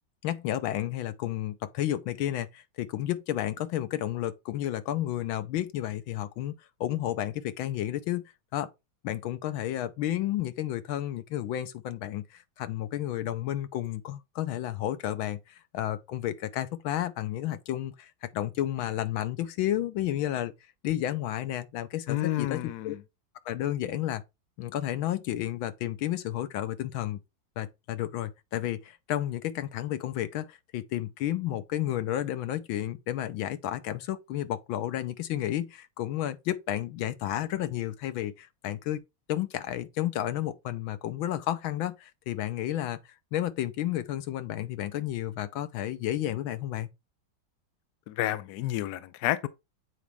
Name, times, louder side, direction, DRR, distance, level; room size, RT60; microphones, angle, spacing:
voice 1, 0.2-6.5 6.8-8.2 8.5-8.7 9.0-20.5 20.8-23.0 23.4-24.2 24.6-27.2 27.6-39.0 39.3-43.0 43.3-46.9, left 12 dB, 85° left, 1.6 m, -31 dB
voice 2, 22.1-23.0 48.1-49.5, left 14 dB, 70° left, 1.0 m, -30 dB
8.4 x 4.2 x 3.5 m
omnidirectional pair, 2.2 m